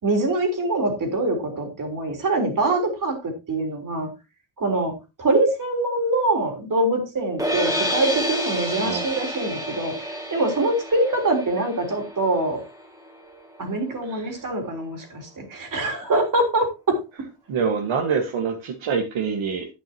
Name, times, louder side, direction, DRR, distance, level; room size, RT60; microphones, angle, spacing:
voice 1, 0.0-4.1 4.6-4.9 5.2-9.9 10.3-12.6 13.6-17.0, right 2 dB, 40° right, 4 dB, 3.6 m, -24 dB
sound 1, 7.4-13.6, equal, 5° right, 2.1 m, -29 dB
voice 2, 8.8-9.1 14.1-14.3 17.5-19.7, right 6 dB, 75° right, 3 dB, 1.7 m, -25 dB
11.0 x 9.2 x 2.9 m, 0.27 s
cardioid pair, 130°, 48 cm